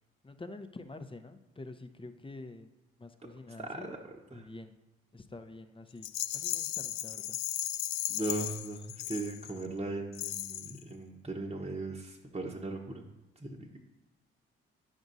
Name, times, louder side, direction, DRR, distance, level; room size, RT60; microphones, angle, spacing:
voice 1, 0.2-2.7 3.0-3.9 4.3-4.8 5.1-6.1 6.3-7.4, left 2 dB, 15° left, 7 dB, 0.8 m, -47 dB
voice 2, 3.6-4.0 4.3-4.5 8.1-13.0 13.4-13.8, right 2 dB, 20° right, -1 dB, 1.1 m, -38 dB
Rattle, 6.0-9.7 10.1-10.8, left 14 dB, 65° left, 0.5 m, -36 dB
10.5 x 6.2 x 2.7 m, 1.0 s
hypercardioid pair, 45°, 30 cm